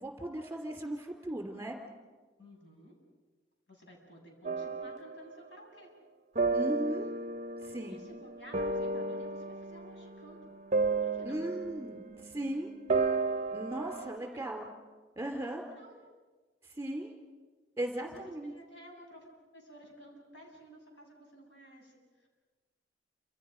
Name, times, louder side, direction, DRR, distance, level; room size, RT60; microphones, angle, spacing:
voice 1, 0.0-1.8 6.5-7.1 7.6-7.9 11.2-12.7 13.5-14.6 15.2-15.6 16.8-17.1 17.8-18.5, right 1 dB, 15° right, 3 dB, 2.8 m, -37 dB
voice 2, 2.4-2.9 3.7-5.9 7.6-10.5 11.0-11.4 14.1-14.4 15.7-16.0 18.0-22.3, equal, 75° left, 0 dB, 7.1 m, -53 dB
sound 1, 4.4-5.2 6.3-12.5 12.9-14.2, right 3 dB, 40° right, 0.6 m, -33 dB
28.5 x 26.5 x 5.2 m, 1.3 s
head